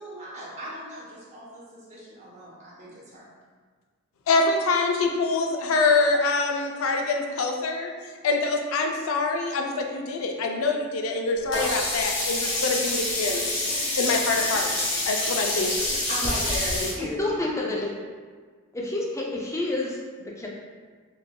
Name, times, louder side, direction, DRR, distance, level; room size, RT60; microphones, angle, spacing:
voice 1, 0.0-3.3 15.9-17.2, equal, 35° right, -7 dB, 0.9 m, -36 dB
voice 2, 4.3-7.9 8.2-13.4 14.0-14.7 15.1-16.0, left 3 dB, 85° left, 3 dB, 0.4 m, -25 dB
Sink (filling or washing), 11.5-16.9, left 2 dB, 65° left, 0.9 m, -27 dB
voice 3, 17.2-17.9 18.7-20.0 20.3-20.5, left 2 dB, 15° left, -2 dB, 0.4 m, -28 dB
3.9 x 2.6 x 2.2 m, 1.5 s
head